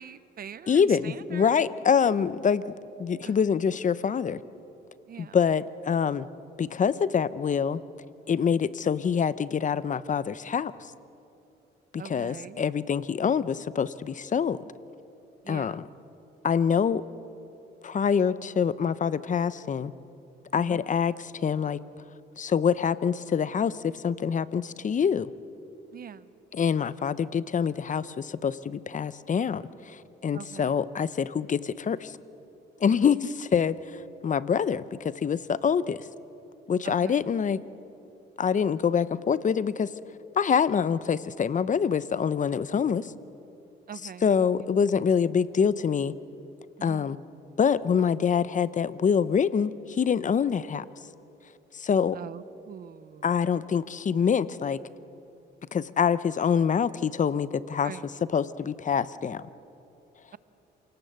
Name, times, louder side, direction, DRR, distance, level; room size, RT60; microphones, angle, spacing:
voice 1, 0.0-1.5 3.2-3.4 5.1-5.4 12.0-12.6 15.4-15.8 20.6-20.9 25.9-26.3 30.3-30.8 32.9-33.1 36.8-37.2 43.9-44.3 44.6-44.7 46.8-47.2 50.5-50.6 52.1-53.3 57.8-58.0, right 8 dB, 50° right, 16 dB, 0.8 m, -43 dB
voice 2, 0.7-4.4 5.2-6.3 6.6-7.8 8.3-10.9 11.9-14.6 15.5-15.9 16.4-17.0 17.8-19.9 20.5-21.8 22.4-25.3 26.5-32.2 32.8-36.1 36.7-37.6 38.4-39.9 40.3-43.1 44.2-46.1 46.8-47.2 47.6-50.9 51.7-52.2 53.2-54.8 55.7-57.9 58.3-59.5, left 7 dB, 40° left, 16 dB, 0.8 m, -25 dB
27.5 x 18.5 x 8.1 m, 2.8 s
cardioid pair, 90°, 20 cm